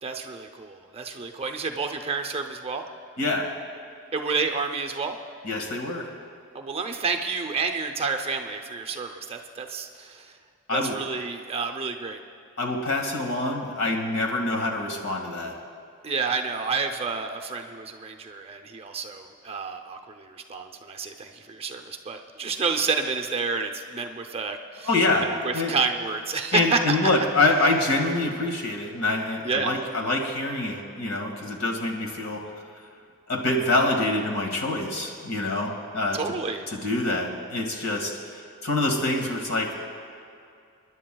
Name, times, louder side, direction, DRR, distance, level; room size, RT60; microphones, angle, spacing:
voice 1, 0.0-2.8 4.1-5.2 6.5-10.4 10.7-12.2 16.0-24.9 25.4-27.0 29.4-29.8 36.1-36.7, right 4 dB, 25° right, 5 dB, 0.6 m, -29 dB
voice 2, 3.2-3.5 5.4-6.1 10.7-10.9 12.6-15.5 24.8-25.3 25.5-25.7 26.5-32.4 33.3-36.2 36.7-38.2 38.6-39.7, left 2 dB, 80° left, 0 dB, 1.9 m, -25 dB
27.5 x 11.0 x 2.3 m, 2.4 s
head